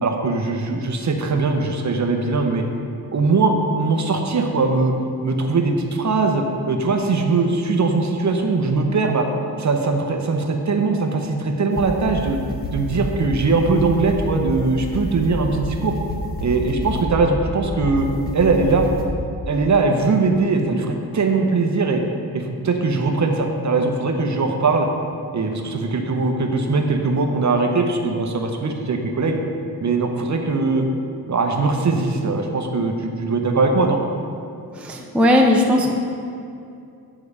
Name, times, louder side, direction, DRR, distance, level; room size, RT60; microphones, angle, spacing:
voice 1, 0.0-2.6 3.1-4.9 5.2-9.3 9.6-12.4 12.7-15.9 16.4-18.1 18.3-18.9 19.5-22.0 22.3-24.9 25.3-29.4 29.8-30.8 31.3-34.0, right 3 dB, 45° right, 3 dB, 0.9 m, -20 dB
sound 1, 11.8-19.1, left 1 dB, 25° left, 1.0 m, -30 dB
voice 2, 34.7-35.9, left 1 dB, 5° right, 0 dB, 0.5 m, -17 dB
9.3 x 4.9 x 6.7 m, 2.5 s
wide cardioid pair, 170°, 39 cm